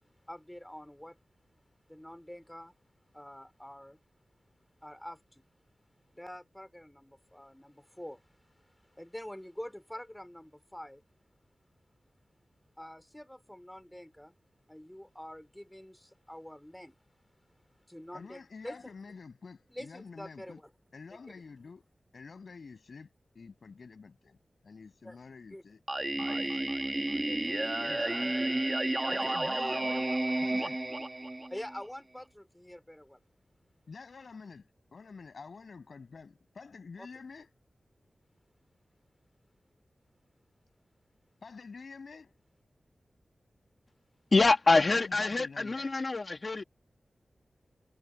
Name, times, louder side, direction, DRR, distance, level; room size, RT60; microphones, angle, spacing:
voice 1, 0.3-1.2 1.9-2.7 3.1-4.0 4.8-5.4 6.1-11.0 12.8-14.3 14.7-17.0 17.9-19.1 19.7-20.7 21.1-21.4 25.0-25.2 25.5-25.6 26.3-26.5 27.2-27.8 29.0-29.4 31.5-33.2 37.0-37.1, equal, 10° left, 5.1 m, -46 dB
voice 2, 18.1-20.6 20.9-21.8 22.1-23.1 23.3-24.4 24.6-25.8 26.1-26.7 27.8-28.4 29.1-30.1 30.4-30.8 33.9-37.5 41.4-42.4 44.8-45.9, left 4 dB, 75° left, 7.1 m, -48 dB
Singing, 25.9-31.8, right 2 dB, 30° right, 2.7 m, -31 dB
voice 3, 44.3-46.6, left 3 dB, 55° left, 2.7 m, -25 dB
cardioid pair, 40°, 0 cm